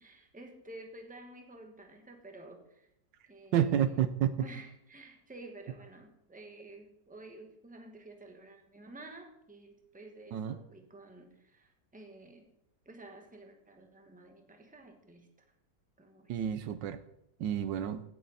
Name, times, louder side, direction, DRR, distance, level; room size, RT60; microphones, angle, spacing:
voice 1, 0.0-2.9 3.3-4.1 4.4-12.5 12.8-15.3 16.0-16.4, right 2 dB, 5° right, 4 dB, 1.3 m, -51 dB
voice 2, 3.5-4.3 10.3-10.6 16.3-17.0 17.4-18.0, right 10 dB, 80° right, 12 dB, 1.4 m, -29 dB
17.0 x 7.5 x 4.2 m, 0.78 s
omnidirectional pair, 2.0 m